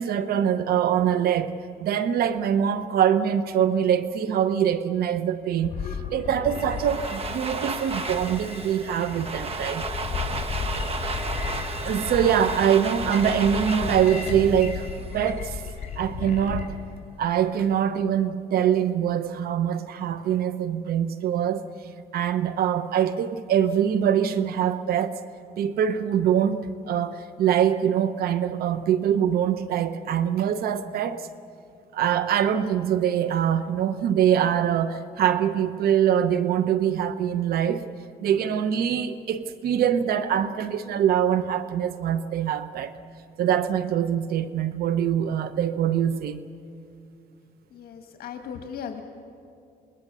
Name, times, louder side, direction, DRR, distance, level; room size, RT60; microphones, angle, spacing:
voice 1, 0.0-5.7 6.1-9.8 11.8-14.9 15.1-15.6 16.0-16.7 17.2-21.6 22.1-25.2 25.6-31.3 31.9-37.9 38.2-42.9 43.4-46.4, right 9 dB, 65° right, 12 dB, 0.9 m, -24 dB
sound 1, 5.6-16.7, left 6 dB, 40° left, 4.1 m, -34 dB
Domestic sounds home sounds, 6.5-15.5, right 4 dB, 35° right, 1.4 m, -33 dB
voice 2, 47.7-49.0, left 7 dB, 65° left, 4 dB, 1.7 m, -37 dB
27.5 x 21.0 x 6.9 m, 2.5 s
cardioid pair, 110°, 17 cm